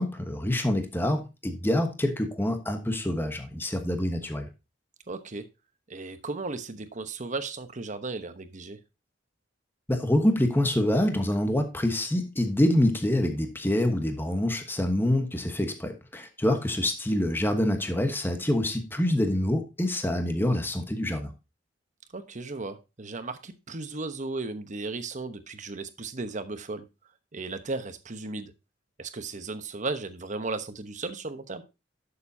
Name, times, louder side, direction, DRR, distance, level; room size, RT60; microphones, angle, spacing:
voice 1, 0.0-4.5 9.9-21.3, left 1 dB, 10° left, 5 dB, 1.2 m, -26 dB
voice 2, 5.1-5.4 5.9-8.8 22.1-26.9 27.3-28.5 29.0-31.6, right 3 dB, 45° right, 10 dB, 1.0 m, -35 dB
11.5 x 6.8 x 2.8 m, 0.27 s
head